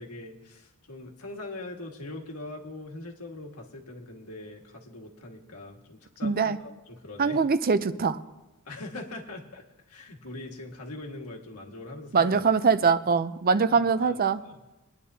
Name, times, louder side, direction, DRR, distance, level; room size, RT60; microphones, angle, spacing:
voice 1, 0.0-7.4 8.6-12.5 13.5-14.6, left 2 dB, 85° left, 0 dB, 1.8 m, -42 dB
voice 2, 6.2-6.6 7.2-8.2 12.1-14.4, right 5 dB, 40° right, 13 dB, 0.5 m, -23 dB
23.0 x 10.5 x 2.8 m, 1.1 s
head